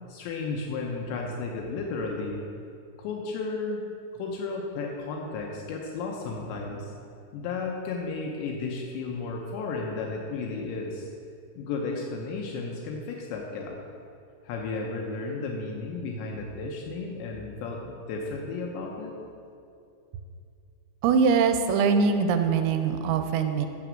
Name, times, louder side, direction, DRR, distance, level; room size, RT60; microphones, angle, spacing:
voice 1, 0.1-2.4 3.0-3.8 4.1-6.9 7.3-11.1 11.6-13.8 14.4-19.2, left 3 dB, 80° left, -1 dB, 3.1 m, -33 dB
voice 2, 21.0-23.7, right 5 dB, 85° right, 7 dB, 2.9 m, -22 dB
11.0 x 7.1 x 7.4 m, 2.5 s
omnidirectional pair, 5.3 m